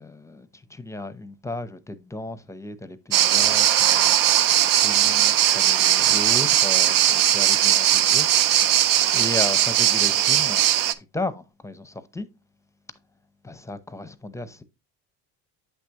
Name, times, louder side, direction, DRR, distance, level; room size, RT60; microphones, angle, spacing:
voice 1, 0.0-10.7 11.0-12.3 13.4-14.6, left 2 dB, 10° left, 0.7 m, -35 dB
sound 1, 3.1-10.9, right 12 dB, 65° right, 0.7 m, -19 dB
8.0 x 6.1 x 2.9 m
supercardioid pair, 95°, 36 cm